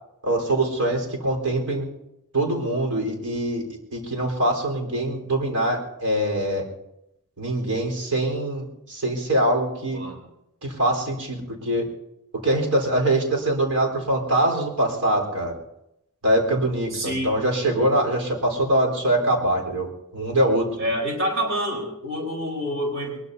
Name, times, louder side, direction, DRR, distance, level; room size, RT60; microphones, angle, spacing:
voice 1, 0.2-1.9 2.3-3.6 3.9-6.7 7.4-10.0 10.6-11.9 12.4-15.5 16.2-20.7, right 1 dB, 80° right, 1 dB, 4.3 m, -23 dB
voice 2, 16.9-17.3 20.8-23.2, equal, 60° right, 0 dB, 4.2 m, -27 dB
22.5 x 22.0 x 2.8 m, 0.84 s
head